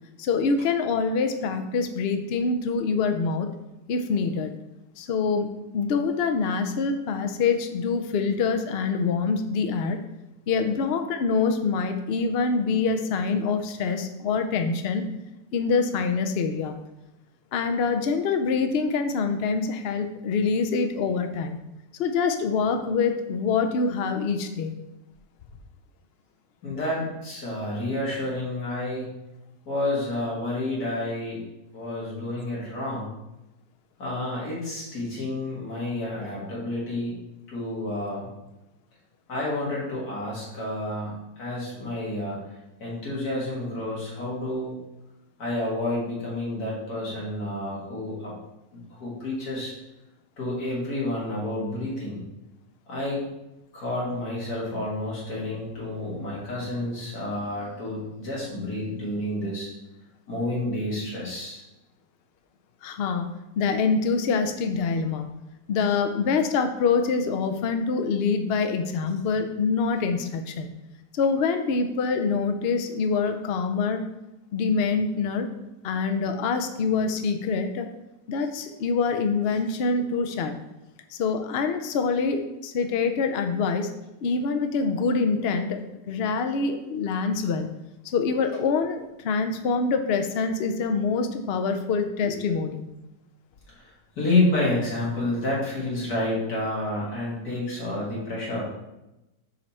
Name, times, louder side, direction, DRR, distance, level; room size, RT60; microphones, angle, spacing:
voice 1, 0.2-3.5 3.9-4.5 5.0-10.0 10.5-15.1 15.5-16.8 17.5-21.6 22.0-24.7 62.8-63.3 63.6-65.3 65.7-70.7 71.1-74.0 74.5-75.5 75.8-77.9 78.3-80.6 81.1-83.9 84.2-85.8 86.1-87.7 88.1-92.9, left 4 dB, 85° left, 6 dB, 0.5 m, -25 dB
voice 2, 26.6-29.1 29.7-31.4 31.7-33.1 34.0-37.1 37.5-38.3 39.3-42.4 42.8-44.7 45.4-48.3 48.7-49.7 50.4-52.2 52.9-53.2 53.7-59.7 60.3-61.6 92.2-92.3 93.7-98.6, left 1 dB, 60° left, -5 dB, 2.6 m, -29 dB
5.4 x 5.3 x 4.3 m, 0.95 s
omnidirectional pair, 1.8 m